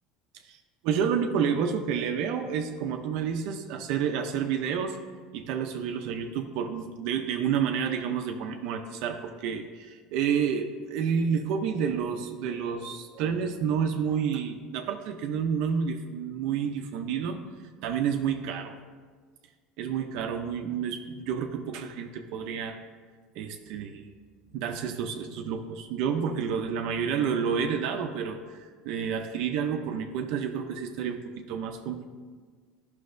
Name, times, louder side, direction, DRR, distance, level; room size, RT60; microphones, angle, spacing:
voice 1, 0.8-5.0 5.3-17.4 17.8-18.7 19.8-22.8 23.4-24.0 24.5-32.0, right 7 dB, 65° right, 5 dB, 0.5 m, -29 dB
12.0 x 5.9 x 2.6 m, 1.5 s
supercardioid pair, 140°, 0 cm